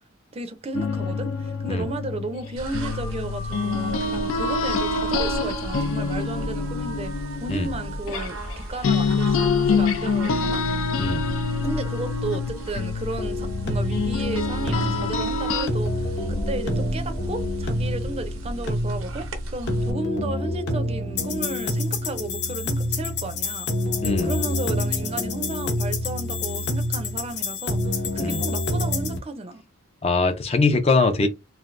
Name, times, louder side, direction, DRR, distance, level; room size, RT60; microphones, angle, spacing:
voice 1, 0.3-7.1 7.4-10.6 11.6-23.7 24.2-29.6, right 2 dB, 30° right, 0.5 m, -33 dB
sound 1, 0.7-8.6 8.8-15.7, left 4 dB, 85° left, 0.5 m, -26 dB
sound 2, 2.6-19.9, right 1 dB, 90° right, 0.7 m, -34 dB
sound 3, 13.2-29.2, left 1 dB, 55° left, 0.8 m, -27 dB
voice 2, 30.0-31.3, left 3 dB, 30° left, 0.4 m, -21 dB
3.2 x 2.5 x 2.5 m
head